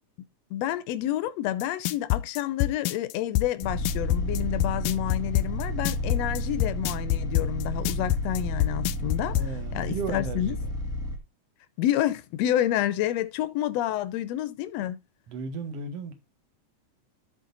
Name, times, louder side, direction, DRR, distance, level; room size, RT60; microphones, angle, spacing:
voice 1, 0.5-9.4 9.7-10.6 11.8-15.0, left 12 dB, 70° left, 1.7 m, -29 dB
sound 1, 1.6-9.5, left 16 dB, 90° left, 2.2 m, -26 dB
sound 2, 3.6-11.2, left 1 dB, ahead, 1.3 m, -31 dB
voice 2, 9.3-10.7 15.3-16.1, right 4 dB, 55° right, 2.6 m, -35 dB
13.0 x 4.4 x 4.1 m
omnidirectional pair, 3.7 m